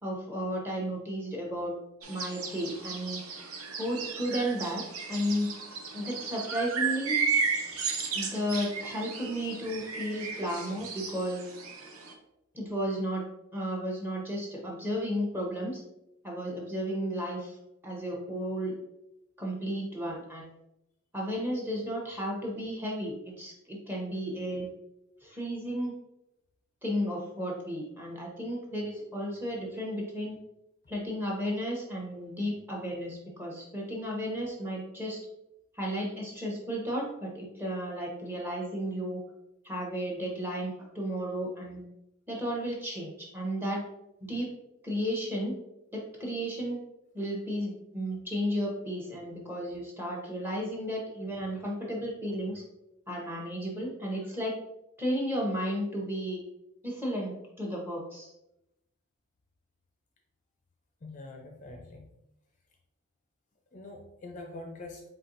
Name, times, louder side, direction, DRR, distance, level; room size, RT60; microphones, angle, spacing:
voice 1, 0.0-1.7 2.1-3.2 3.8-4.8 5.1-5.5 5.9-7.2 8.1-11.5 12.5-13.2 13.5-15.8 16.2-17.6 17.8-18.8 19.4-20.5 21.1-24.7 25.2-25.9 26.8-30.3 30.9-35.2 35.7-39.2 39.6-41.8 42.3-43.8 44.3-44.5 44.8-45.5 45.9-46.8 47.1-52.6 53.1-54.6 55.0-56.4 56.8-58.3, equal, 10° right, -2 dB, 0.9 m, -33 dB
sound 1, 2.0-12.1, right 5 dB, 75° right, 0.7 m, -34 dB
voice 2, 61.0-62.1 63.7-65.0, left 2 dB, 35° left, 2 dB, 0.5 m, -44 dB
4.3 x 3.8 x 2.6 m, 0.87 s
head